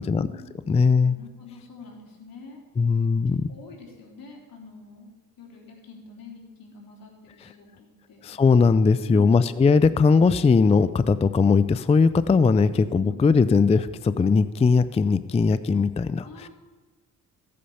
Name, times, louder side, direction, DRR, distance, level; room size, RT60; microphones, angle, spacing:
voice 1, 0.0-0.7 1.0-2.6 3.5-5.1 5.4-8.2 12.7-13.2 16.2-16.5, left 4 dB, 75° left, -1 dB, 3.6 m, -45 dB
voice 2, 0.7-1.2 2.8-3.5 7.4-7.5 8.2-16.5, left 4 dB, 20° left, 14 dB, 0.4 m, -20 dB
15.0 x 8.5 x 5.6 m, 1.3 s
cardioid pair, 85°, 35 cm